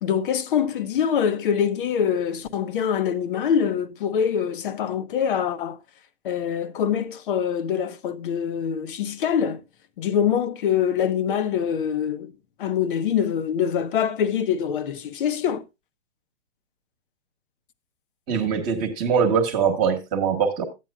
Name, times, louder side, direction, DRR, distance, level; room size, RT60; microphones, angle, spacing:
voice 1, 0.0-5.8 6.2-9.6 10.0-12.3 12.6-15.6, left 8 dB, 45° left, 1.0 m, -24 dB
voice 2, 18.3-20.6, right 6 dB, 25° right, 1.4 m, -22 dB
12.5 x 9.3 x 2.4 m
hypercardioid pair, 155°, 36 cm